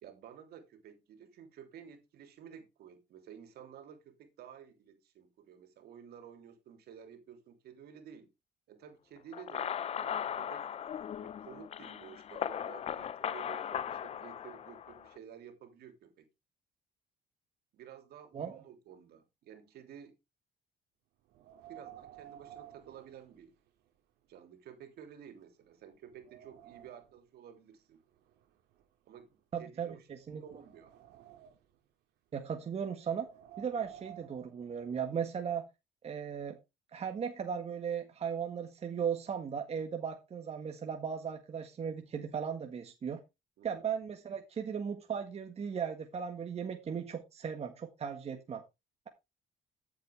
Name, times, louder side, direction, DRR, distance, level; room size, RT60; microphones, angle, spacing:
voice 1, 0.0-8.3 8.7-10.7 11.2-16.3 17.7-20.1 21.7-23.6 24.3-28.0 29.0-30.9 43.6-43.9, right 8 dB, 70° right, 3.2 m, -52 dB
sound 1, 9.3-15.1, left 9 dB, 40° left, 0.5 m, -38 dB
Wind, 21.3-23.9 24.2-24.3 25.0-25.1 25.6-27.2 28.1-29.6 30.2-31.8 33.0-35.2, right 11 dB, 85° right, 2.0 m, -54 dB
voice 2, 29.5-30.4 32.3-33.3 33.6-35.7 36.0-36.6 36.9-43.2 43.6-48.6, right 7 dB, 40° right, 1.7 m, -37 dB
14.0 x 7.8 x 3.5 m
cardioid pair, 110°, 17 cm